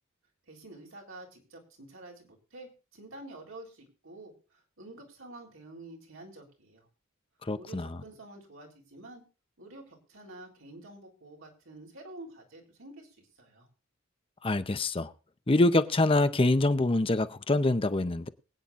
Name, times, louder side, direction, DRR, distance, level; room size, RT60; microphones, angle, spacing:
voice 1, 0.5-6.9 7.5-9.2 9.6-13.7, right 2 dB, 75° right, 3.7 m, -49 dB
voice 2, 7.5-7.9 14.4-15.1 15.5-18.3, left 2 dB, 25° left, 0.7 m, -25 dB
23.5 x 9.0 x 2.5 m
head